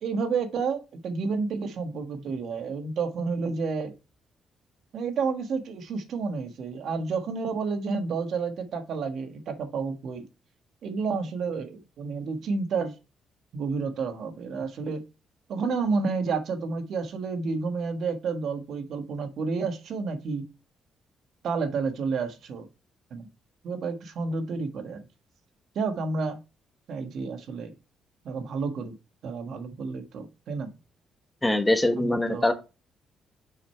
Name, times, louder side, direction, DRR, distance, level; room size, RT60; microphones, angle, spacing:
voice 1, 0.0-3.9 4.9-10.3 10.8-12.9 13.5-15.0 15.5-20.5 21.4-22.7 23.1-23.3 23.6-25.0 25.7-26.4 26.9-27.7 28.2-28.9 29.2-30.7 32.0-32.5, right 4 dB, 70° right, 8 dB, 1.5 m, -30 dB
voice 2, 31.4-32.5, left 1 dB, 10° left, 7 dB, 1.3 m, -23 dB
6.4 x 5.2 x 4.4 m, 0.29 s
cardioid pair, 90°, 0 cm